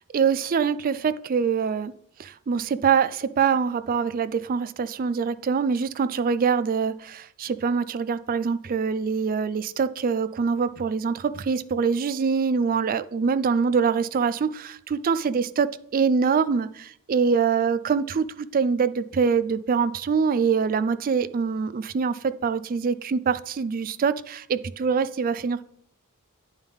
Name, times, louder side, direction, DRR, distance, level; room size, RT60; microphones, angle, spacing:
voice 1, 0.1-1.9 2.2-25.6, right 5 dB, 40° right, 0.3 m, -24 dB
9.1 x 7.1 x 3.5 m
head